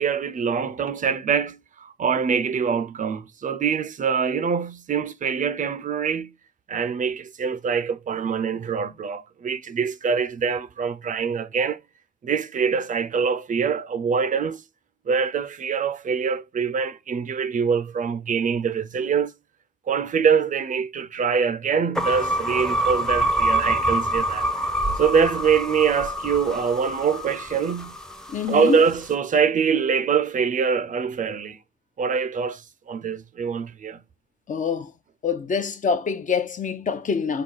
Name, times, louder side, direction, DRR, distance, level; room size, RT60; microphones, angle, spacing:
voice 1, 0.0-6.3 6.7-11.8 12.2-14.6 15.1-19.3 19.9-24.5 25.0-27.9 28.5-31.6 32.0-34.0, right 6 dB, 50° right, 0.4 m, -24 dB
sound 1, 22.0-28.3, right 1 dB, 5° left, 0.5 m, -25 dB
voice 2, 28.3-28.8 34.5-34.9 35.2-37.4, left 6 dB, 50° left, 0.6 m, -25 dB
4.8 x 2.3 x 3.8 m
cardioid pair, 105°, 17 cm